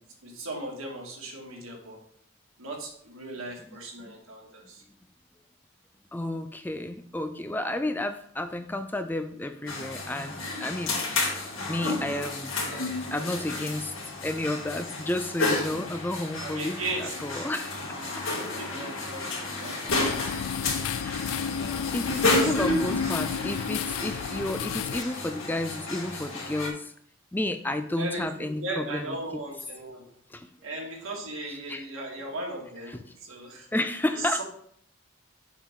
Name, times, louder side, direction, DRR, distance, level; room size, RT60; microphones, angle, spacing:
voice 1, 0.2-2.0 2.6-4.8 11.3-11.6 16.1-17.5 18.0-21.2 22.3-22.6 28.0-30.0 30.6-33.7 34.1-34.4, right 2 dB, 80° right, -1 dB, 2.3 m, -38 dB
voice 2, 6.1-11.4 11.7-12.6 13.1-13.9 14.2-17.8 21.0-21.3 21.9-26.9 27.3-29.2 30.3-30.5 31.7-31.8 32.9-33.0 33.7-34.4, left 1 dB, 10° left, 9 dB, 0.3 m, -31 dB
sound 1, 9.7-26.7, left 2 dB, 70° left, 2.4 m, -31 dB
sound 2, 19.9-25.0, left 8 dB, 85° left, 0.3 m, -32 dB
7.2 x 7.1 x 3.7 m, 0.63 s
head